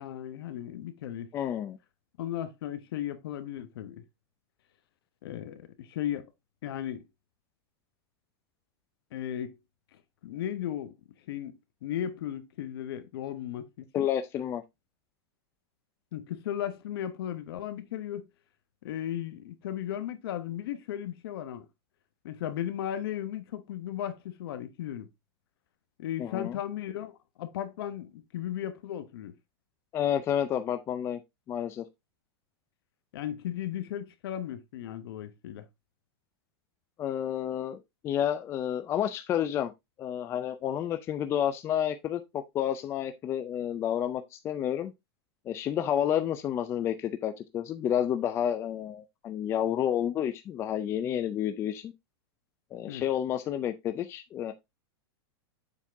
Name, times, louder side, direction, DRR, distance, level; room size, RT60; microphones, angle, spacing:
voice 1, 0.0-1.3 2.2-4.0 5.2-6.3 6.6-7.0 9.1-9.6 10.2-11.0 11.3-14.1 16.1-18.3 18.8-21.7 22.2-25.1 26.0-27.1 27.4-29.3 33.1-35.6 52.9-53.0, left 11 dB, 65° left, 1.2 m, -36 dB
voice 2, 1.3-1.8 13.9-14.6 26.2-26.6 29.9-31.2 31.5-31.8 37.0-39.7 40.0-44.9 45.5-51.9 52.7-54.5, left 10 dB, 20° left, 0.4 m, -30 dB
7.2 x 4.3 x 3.5 m
supercardioid pair, 160°, 13 cm